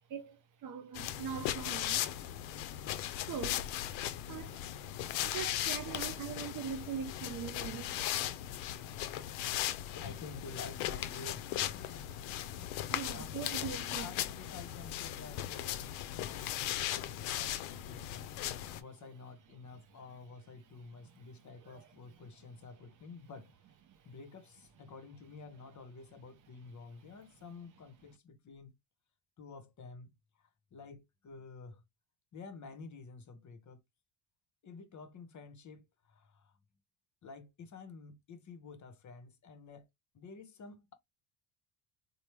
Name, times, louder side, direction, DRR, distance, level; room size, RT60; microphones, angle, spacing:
voice 1, 0.1-2.0 3.3-3.7 4.3-4.6 5.2-8.1 12.9-14.1, right 8 dB, 40° right, 0.5 m, -41 dB
sound 1, 0.9-18.8, left 12 dB, 75° left, 0.6 m, -38 dB
voice 2, 9.9-12.6 13.1-13.4 14.0-23.5 24.0-28.8 29.4-31.8 32.3-33.8 34.6-36.6 37.2-39.9 40.1-40.9, left 4 dB, 35° left, 0.7 m, -51 dB
3.2 x 2.1 x 3.0 m
hypercardioid pair, 70°, 49 cm